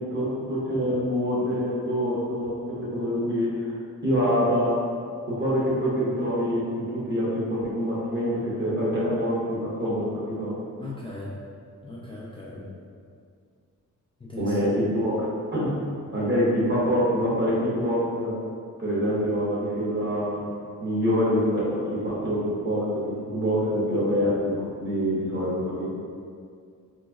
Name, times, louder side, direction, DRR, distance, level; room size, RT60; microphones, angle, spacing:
voice 1, 0.0-3.7 4.0-4.8 5.3-10.6 14.4-15.7 16.1-18.4 18.8-20.5 20.8-22.9 23.2-25.9, equal, 35° right, -7 dB, 1.1 m, -25 dB
voice 2, 10.8-11.4 11.8-12.6 14.2-14.6, left 2 dB, 15° left, -6 dB, 0.3 m, -38 dB
3.1 x 3.1 x 2.3 m, 2.2 s
cardioid pair, 85°, 32 cm